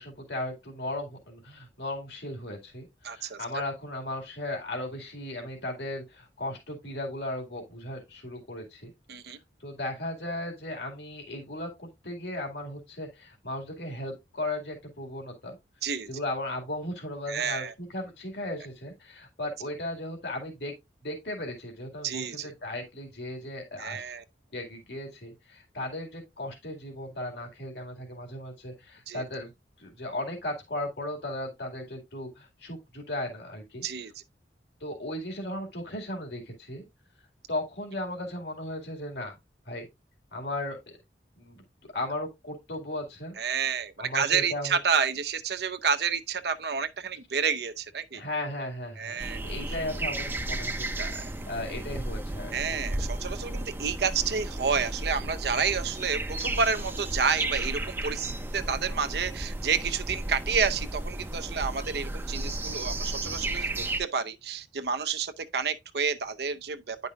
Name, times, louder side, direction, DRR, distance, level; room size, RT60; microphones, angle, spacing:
voice 1, 0.0-8.9 9.3-15.6 16.1-20.7 21.0-24.1 24.5-29.5 29.8-33.8 34.8-36.8 37.5-39.3 39.7-39.9 40.3-40.8 41.4-43.4 44.0-44.8 48.1-49.1 49.4-50.9 51.2-52.8, left 1 dB, 70° left, 2.2 m, -36 dB
voice 2, 3.0-3.4 9.1-9.4 15.8-16.1 17.3-17.7 22.0-22.5 23.8-24.2 29.1-29.2 33.8-34.2 43.4-48.2 49.0-49.4 51.0-51.1 52.5-67.0, right 6 dB, 60° right, 0.6 m, -29 dB
sound 1, 49.2-64.0, right 1 dB, 10° right, 0.6 m, -34 dB
9.8 x 5.4 x 2.4 m
head